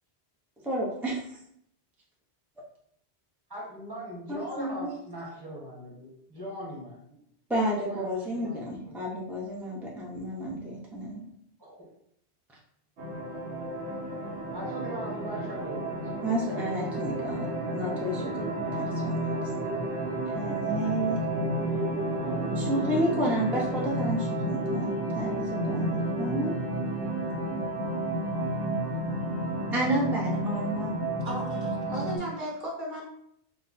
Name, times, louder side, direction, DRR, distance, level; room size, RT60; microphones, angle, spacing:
voice 1, 0.6-1.4 4.3-4.9 7.5-11.3 16.2-17.5 17.7-19.2 20.3-21.2 22.6-26.5 29.7-30.9, right 1 dB, 5° right, -4 dB, 0.3 m, -31 dB
voice 2, 3.5-7.2 7.6-8.9 11.6-11.8 14.5-16.6 21.6-23.5, equal, 20° right, -4 dB, 1.1 m, -41 dB
sound 1, 13.0-32.2, right 1 dB, 85° right, 1.0 m, -31 dB
voice 3, 31.2-33.0, right 1 dB, 50° right, -3 dB, 1.0 m, -36 dB
3.5 x 2.0 x 4.1 m, 0.72 s
omnidirectional pair, 1.1 m